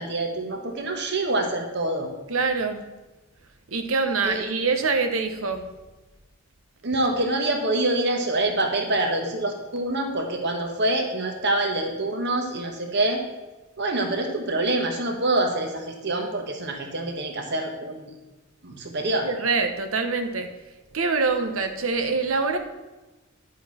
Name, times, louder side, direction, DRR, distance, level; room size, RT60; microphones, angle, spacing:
voice 1, 0.0-2.1 4.2-4.5 6.8-13.2 13.8-18.0 18.6-19.3, right 2 dB, 55° right, 3 dB, 1.6 m, -26 dB
voice 2, 2.3-2.8 3.7-5.7 19.2-20.5 20.9-22.6, right 4 dB, 80° right, 7 dB, 1.1 m, -25 dB
10.5 x 7.3 x 4.3 m, 1.1 s
head